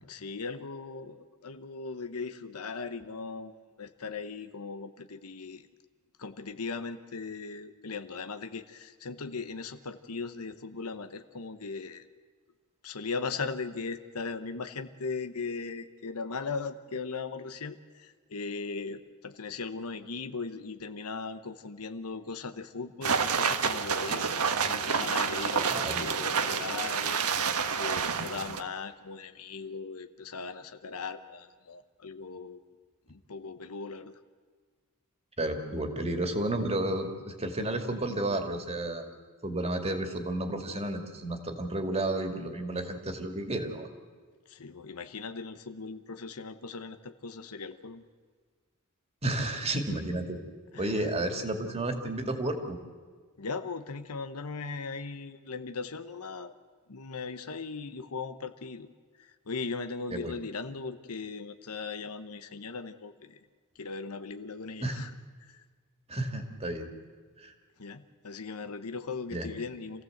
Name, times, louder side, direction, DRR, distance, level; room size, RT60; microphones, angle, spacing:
voice 1, 0.0-5.7 6.2-12.1 12.8-24.3 24.7-32.6 33.1-34.2 44.5-48.0 50.7-51.1 53.4-56.5 56.9-58.9 59.2-63.4 63.8-65.1 65.5-65.6 67.8-70.0, left 4 dB, 90° left, 10 dB, 1.0 m, -38 dB
sound 1, 23.0-28.6, right 6 dB, 90° right, 1.3 m, -29 dB
voice 2, 25.7-26.1 35.4-39.1 39.4-43.9 49.2-50.4 50.8-52.8 60.1-60.3 64.8-65.0 66.1-66.9 67.4-67.5 69.3-69.5, right 1 dB, 30° right, 5 dB, 2.3 m, -32 dB
27.0 x 16.0 x 7.9 m, 1.5 s
head